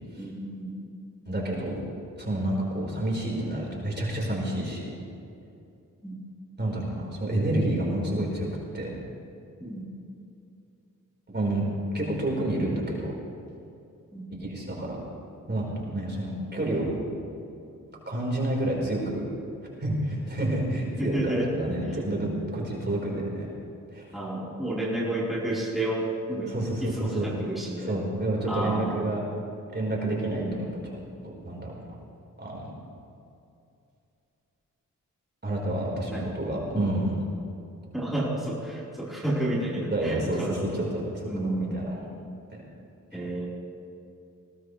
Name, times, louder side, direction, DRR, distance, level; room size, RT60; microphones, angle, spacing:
voice 1, 0.2-0.7 6.0-6.2 9.6-9.9 14.1-14.2 21.0-21.5 22.2-22.4 24.1-26.5 26.8-28.0 28.5-29.1 30.3-30.7 36.1-36.3 36.7-36.9 37.9-40.9 41.2-41.8 43.1-43.5, right 1 dB, ahead, -7 dB, 4.3 m, -31 dB
voice 2, 1.2-1.8 2.2-4.9 6.6-8.5 8.7-8.9 11.3-11.6 11.9-13.1 14.4-15.0 15.5-16.9 18.1-19.2 19.8-23.5 23.9-24.1 26.5-27.3 27.8-29.2 29.7-31.8 32.4-32.7 35.4-37.2 39.9-41.0 41.4-42.1 42.5-42.6, right 1 dB, 30° right, -3 dB, 4.6 m, -29 dB
20.5 x 17.5 x 3.3 m, 2.6 s
cardioid pair, 60°, 33 cm